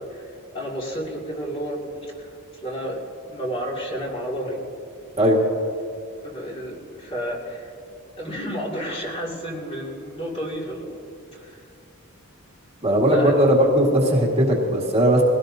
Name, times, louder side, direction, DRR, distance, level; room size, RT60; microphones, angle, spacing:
voice 1, 0.0-1.9 2.2-2.3 2.6-3.0 3.3-4.6 6.2-7.7 8.2-11.0 11.3-11.6 13.1-14.0, equal, 25° left, -3 dB, 2.5 m, -31 dB
voice 2, 12.8-15.2, equal, 30° right, -2 dB, 1.8 m, -18 dB
21.5 x 17.0 x 2.8 m, 2.5 s
head